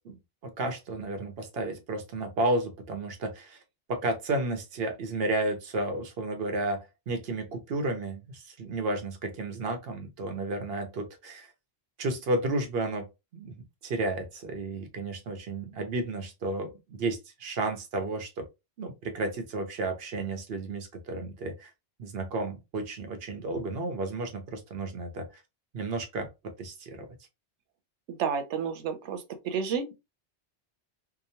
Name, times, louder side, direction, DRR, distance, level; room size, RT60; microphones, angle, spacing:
voice 1, 0.0-3.6 3.9-11.5 12.0-13.1 13.3-18.4 18.8-21.7 22.0-25.4 25.7-27.1, right 2 dB, 60° right, 0.9 m, -32 dB
voice 2, 28.1-29.9, right 6 dB, 90° right, 0.9 m, -31 dB
2.9 x 2.0 x 2.7 m
omnidirectional pair, 1.2 m